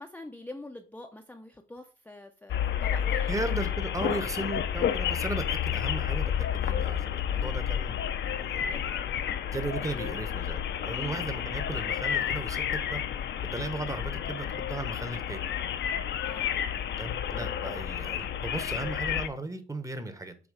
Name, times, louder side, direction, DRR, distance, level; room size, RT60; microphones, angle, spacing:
voice 1, 0.0-3.4 10.9-11.2 16.2-16.7 17.3-17.5, left 2 dB, 10° left, 0.6 m, -45 dB
sound 1, 2.5-19.3, left 9 dB, 60° left, 0.6 m, -31 dB
voice 2, 3.3-8.9 9.5-13.0 13.5-15.5 17.0-20.4, right 2 dB, 15° right, 0.9 m, -36 dB
7.1 x 3.1 x 4.9 m
cardioid pair, 90°, 20 cm